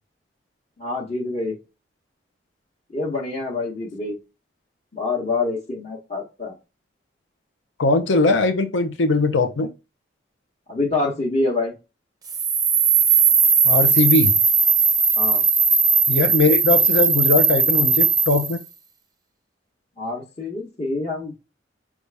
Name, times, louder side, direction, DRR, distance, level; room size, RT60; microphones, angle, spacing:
voice 1, 0.8-1.6 2.9-4.2 4.9-6.5 10.7-11.7 15.2-15.4 20.0-21.3, left 3 dB, 35° left, 0.9 m, -26 dB
voice 2, 7.8-9.7 13.6-14.3 16.1-18.6, left 3 dB, 80° left, 0.6 m, -20 dB
sound 1, 12.3-18.6, right 5 dB, 20° right, 0.5 m, -18 dB
5.5 x 2.4 x 3.4 m
head